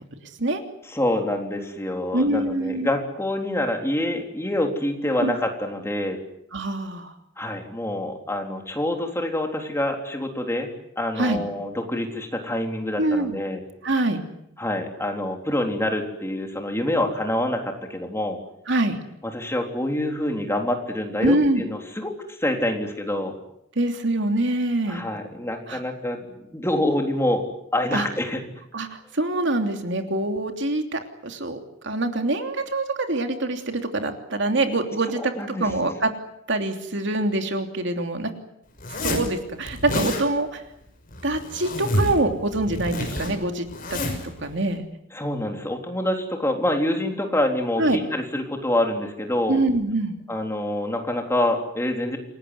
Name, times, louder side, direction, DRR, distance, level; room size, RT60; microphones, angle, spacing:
voice 1, 0.9-6.2 7.4-10.7 11.0-13.6 14.6-18.4 19.3-22.1 22.4-23.3 24.9-27.4 27.7-28.4 35.4-35.7 45.1-49.6 50.3-52.2, left 1 dB, 15° left, 3 dB, 3.7 m, -26 dB
voice 2, 2.1-2.9 5.2-5.4 6.5-7.1 11.2-11.4 13.0-13.4 13.8-14.2 18.7-19.0 21.2-21.6 23.7-25.0 25.7-25.8 27.9-28.1 28.7-36.1 36.5-38.3 39.0-40.6 41.2-44.9 47.8-48.0 49.5-50.1, right 2 dB, 65° right, 5 dB, 3.1 m, -25 dB
Zipper (clothing), 38.8-39.3 39.7-40.2 41.1-42.2 42.5-44.3, left 1 dB, 45° left, 6.1 m, -28 dB
28.0 x 18.5 x 9.6 m, 0.81 s
head